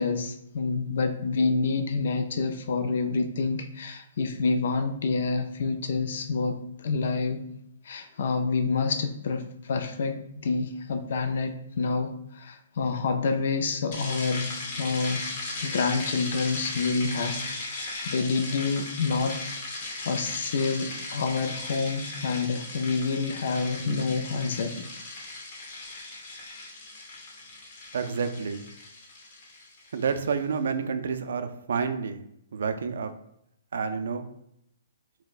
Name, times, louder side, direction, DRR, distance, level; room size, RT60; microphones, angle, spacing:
voice 1, 0.0-7.5 7.8-15.2 15.6-17.4 17.7-19.4 20.1-24.8, left 4 dB, 65° left, 8 dB, 0.4 m, -28 dB
sound 1, 13.9-30.2, left 2 dB, 45° left, 0.8 m, -37 dB
voice 2, 27.9-28.7 29.9-32.2 32.5-33.1 33.7-34.3, right 5 dB, 70° right, 8 dB, 0.3 m, -29 dB
3.9 x 2.0 x 2.4 m, 0.75 s
hypercardioid pair, 145°, 0 cm